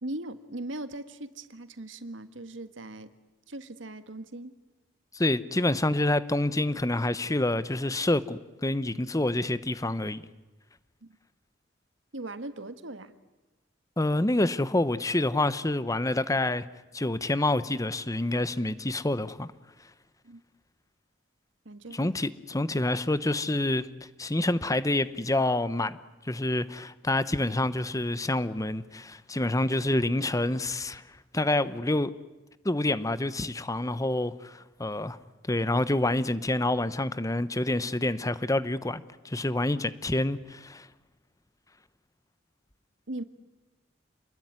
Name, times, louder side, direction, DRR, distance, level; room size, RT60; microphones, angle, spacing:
voice 1, 0.0-3.1 3.5-4.5 11.0-11.2 12.1-13.1 20.2-20.4 21.6-22.1 22.6-22.7 43.1-43.2, right 1 dB, 80° right, 1.5 m, -39 dB
voice 2, 5.1-10.2 14.0-16.7 16.9-19.5 21.9-23.9 24.2-26.0 26.2-31.0 31.3-32.1 32.6-35.2 35.5-40.9, left 2 dB, 20° left, 0.9 m, -27 dB
28.5 x 21.0 x 9.6 m
head